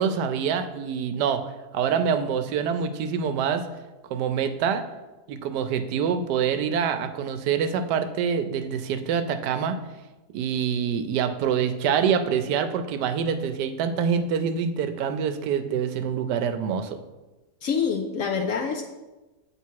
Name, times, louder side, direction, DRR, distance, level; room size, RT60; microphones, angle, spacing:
voice 1, 0.0-1.4 1.7-3.6 4.1-4.8 5.3-9.8 10.3-17.0, right 7 dB, 85° right, 9 dB, 1.2 m, -25 dB
voice 2, 17.6-18.9, left 6 dB, 65° left, 4 dB, 0.8 m, -26 dB
8.2 x 3.6 x 4.6 m, 1.1 s
omnidirectional pair, 1.8 m